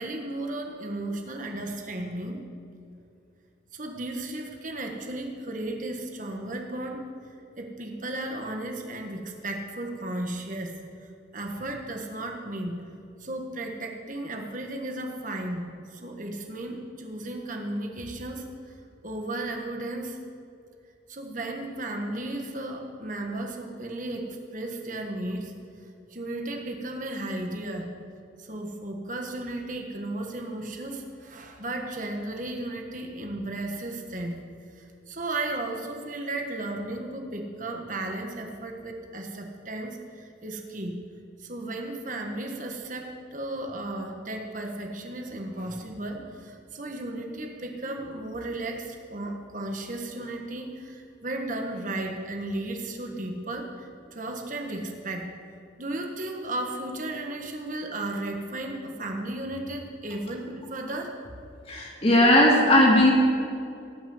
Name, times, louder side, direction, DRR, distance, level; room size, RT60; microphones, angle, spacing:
voice 1, 0.0-2.4 3.7-7.0 7.6-10.7 11.3-12.8 13.2-18.4 19.0-20.2 21.1-25.5 26.1-27.9 28.4-34.4 34.7-41.0 41.4-55.3 55.8-61.2, right 1 dB, 40° right, 2 dB, 1.5 m, -34 dB
voice 2, 61.7-63.1, left 1 dB, 30° left, -2 dB, 2.5 m, -18 dB
18.0 x 6.1 x 7.9 m, 2.5 s
head